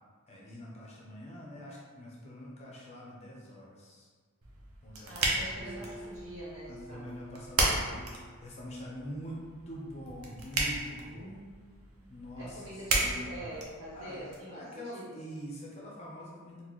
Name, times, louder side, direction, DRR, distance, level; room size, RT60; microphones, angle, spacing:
voice 1, 0.3-4.1 4.8-6.0 6.7-11.4 12.1-13.6 13.9-16.6, equal, 30° left, -4 dB, 0.6 m, -45 dB
sound 1, 4.4-14.4, right 2 dB, 85° right, 0.6 m, -35 dB
voice 2, 5.0-7.1 11.0-12.1 12.4-15.2, right 1 dB, 65° right, -7 dB, 1.1 m, -45 dB
Acoustic guitar, 5.6-9.1, right 1 dB, 20° right, 0.4 m, -49 dB
4.0 x 2.1 x 3.0 m, 1.5 s
head